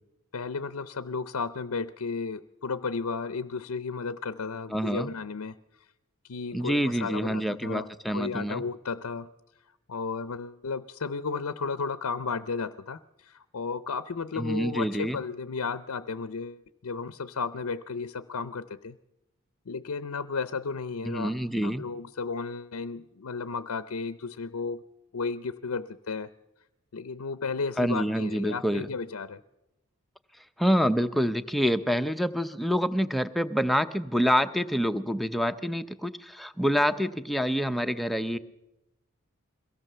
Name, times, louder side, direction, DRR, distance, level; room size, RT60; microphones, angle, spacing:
voice 1, 0.3-5.6 6.2-7.9 8.1-9.3 9.9-19.0 19.7-21.3 21.6-24.8 25.1-26.3 26.9-29.4, left 4 dB, 90° left, 13 dB, 0.6 m, -33 dB
voice 2, 4.7-5.1 6.5-8.6 14.4-15.2 21.0-21.8 27.8-28.9 30.6-38.4, equal, ahead, 9 dB, 0.6 m, -27 dB
23.0 x 17.0 x 6.8 m, 0.93 s
head